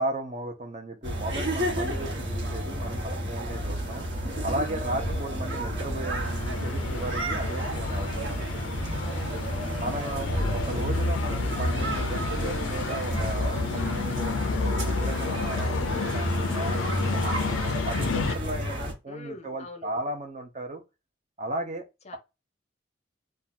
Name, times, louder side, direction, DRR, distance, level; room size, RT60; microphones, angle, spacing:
voice 1, 0.0-4.1 4.4-8.6 9.8-17.2 17.9-20.8 21.4-21.8, right 1 dB, 35° right, 0.8 m, -35 dB
sound 1, 1.0-18.9, equal, 65° right, 1.2 m, -30 dB
sound 2, 6.2-18.4, left 6 dB, 85° left, 0.4 m, -33 dB
voice 2, 9.0-9.9 19.1-19.9 22.1-22.2, left 2 dB, 35° left, 0.6 m, -44 dB
2.8 x 2.4 x 4.1 m
head